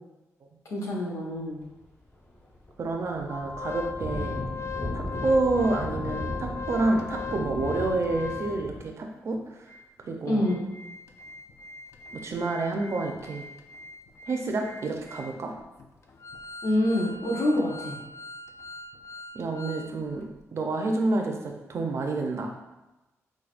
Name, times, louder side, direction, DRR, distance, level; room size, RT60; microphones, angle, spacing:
voice 1, 0.7-1.6 10.2-10.7 16.6-17.9, left 1 dB, 70° left, -3 dB, 0.9 m, -26 dB
sound 1, 2.1-2.3 2.5-8.8, left 1 dB, 40° left, 1.0 m, -36 dB
voice 2, 2.8-4.4 4.9-9.4 10.0-10.4 12.1-13.4 14.3-15.6 19.3-22.5, right 3 dB, 55° right, 3 dB, 0.5 m, -28 dB
Organ, 3.3-8.8 9.3-9.4 9.7-9.8 10.3-19.9 20.2-20.3, left 5 dB, 55° left, 0.3 m, -40 dB
4.6 x 2.2 x 2.4 m, 1.0 s
cardioid pair, 90°, 6 cm